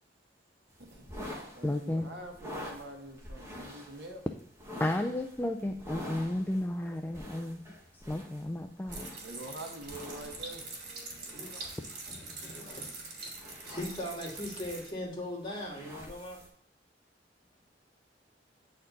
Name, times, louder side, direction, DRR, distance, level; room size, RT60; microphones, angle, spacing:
sound 1, 0.7-16.5, left 1 dB, 15° right, 1.6 m, -47 dB
voice 1, 0.9-1.2 1.5-4.2 9.2-10.7, right 1 dB, 80° right, 2 dB, 1.4 m, -45 dB
voice 2, 1.6-2.1 4.8-7.6 7.9-9.1, left 1 dB, 10° left, 5 dB, 0.4 m, -33 dB
sound 2, 8.9-14.9, right 3 dB, 65° right, 2.6 m, -44 dB
voice 3, 11.3-11.8 12.1-16.4, left 1 dB, 30° left, -4 dB, 2.4 m, -40 dB
8.8 x 4.3 x 3.9 m, 0.70 s
head